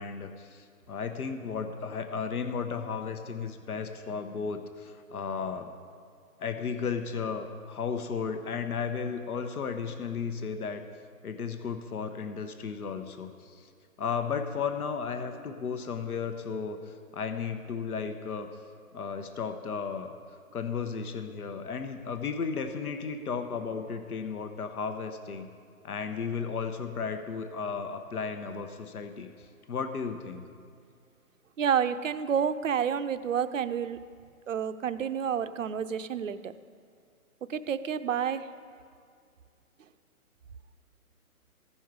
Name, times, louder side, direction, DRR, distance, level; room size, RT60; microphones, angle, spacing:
voice 1, 0.0-5.7 6.4-10.9 11.2-13.7 14.0-18.5 18.9-20.1 20.5-25.5 25.8-29.3 29.7-30.5, left 5 dB, 80° left, 7 dB, 1.0 m, -34 dB
voice 2, 31.6-34.0 34.5-36.5 37.5-38.5, right 8 dB, 60° right, 12 dB, 0.5 m, -29 dB
15.0 x 5.5 x 4.7 m, 2.3 s
hypercardioid pair, 170°, 44 cm